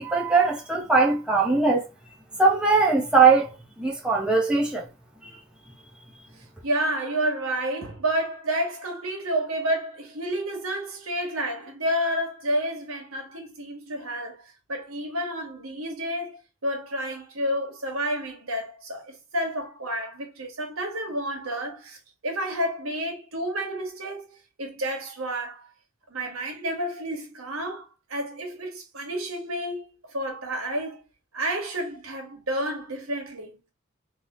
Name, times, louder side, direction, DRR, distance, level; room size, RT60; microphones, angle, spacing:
voice 1, 0.0-1.8 2.4-3.5 3.8-4.8, right 4 dB, 5° right, 1.0 m, -20 dB
voice 2, 6.6-14.4 14.7-22.0 22.2-25.7 26.1-31.0 31.3-33.7, right 1 dB, 85° right, 1.7 m, -30 dB
3.7 x 3.3 x 4.3 m
head